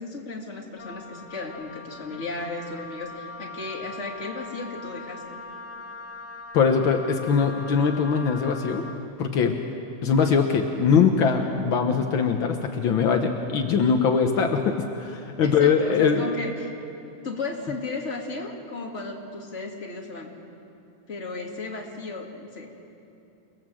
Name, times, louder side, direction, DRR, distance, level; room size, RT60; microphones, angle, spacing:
voice 1, 0.0-5.4 15.4-16.7 17.2-20.3 21.1-22.7, left 3 dB, 25° left, 0 dB, 2.3 m, -34 dB
Wind instrument woodwind instrument, 0.8-9.0, left 3 dB, 50° left, 1.2 m, -41 dB
voice 2, 6.5-8.8 9.2-9.6 10.0-16.3, left 6 dB, 75° left, 4 dB, 1.1 m, -22 dB
29.0 x 19.0 x 7.7 m, 2.7 s
omnidirectional pair, 3.8 m